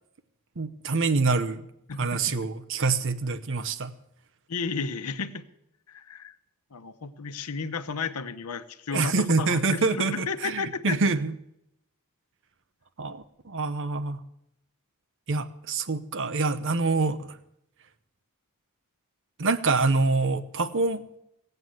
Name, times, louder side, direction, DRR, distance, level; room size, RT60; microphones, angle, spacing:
voice 1, 0.6-1.6 2.0-3.9 8.9-11.3 13.0-14.2 15.3-17.4 19.4-21.0, right 3 dB, 60° right, 12 dB, 0.9 m, -26 dB
voice 2, 1.9-2.2 4.5-5.5 5.9-6.4 6.7-11.0, left 5 dB, 90° left, 11 dB, 0.8 m, -33 dB
17.0 x 7.9 x 7.8 m, 0.81 s
head